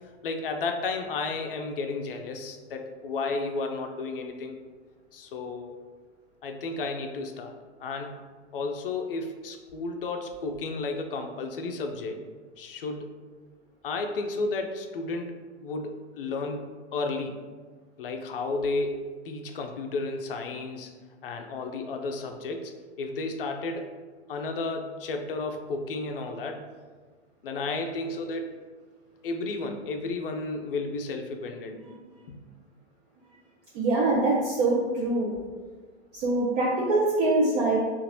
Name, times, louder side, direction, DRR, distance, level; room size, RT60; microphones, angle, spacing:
voice 1, 0.2-4.6 5.1-5.7 6.4-7.5 7.8-8.2 8.5-13.1 13.8-17.4 18.0-20.9 21.2-23.9 24.3-26.6 27.4-28.6 29.2-31.8 32.3-32.4, left 3 dB, 55° left, 4 dB, 0.5 m, -33 dB
voice 2, 33.7-35.4 36.1-37.8, right 2 dB, 35° right, -4 dB, 0.6 m, -24 dB
3.7 x 2.5 x 3.0 m, 1.4 s
figure-of-eight pair, 105°, 34 cm